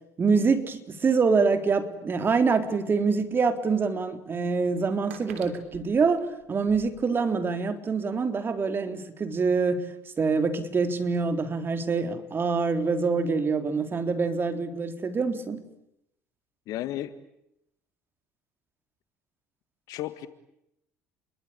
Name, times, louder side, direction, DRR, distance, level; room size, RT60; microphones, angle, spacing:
voice 1, 0.2-9.9 10.2-15.6, right 4 dB, 30° right, 8 dB, 3.7 m, -25 dB
sound 1, 3.0-3.1 4.1-4.2 4.6-6.9, right 9 dB, 70° right, 3.2 m, -48 dB
voice 2, 16.7-17.1 19.9-20.3, left 14 dB, 55° left, 14 dB, 1.8 m, -33 dB
30.0 x 22.5 x 8.8 m, 0.82 s
figure-of-eight pair, 60°, 7 cm